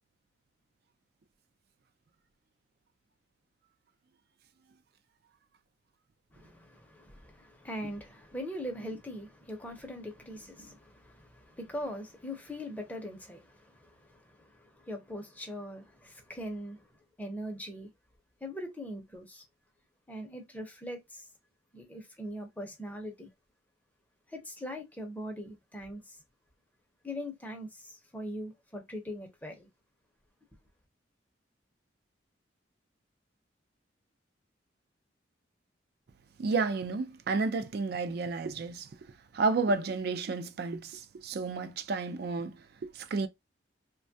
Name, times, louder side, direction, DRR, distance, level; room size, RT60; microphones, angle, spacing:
voice 1, 6.3-16.9 17.2-17.9 18.4-19.4 20.1-21.3 21.7-23.3 24.3-26.2 27.0-29.7, equal, 10° left, 0.6 m, -41 dB
voice 2, 36.4-38.9 39.3-43.3, right 4 dB, 55° right, 0.4 m, -31 dB
3.1 x 2.2 x 2.6 m
head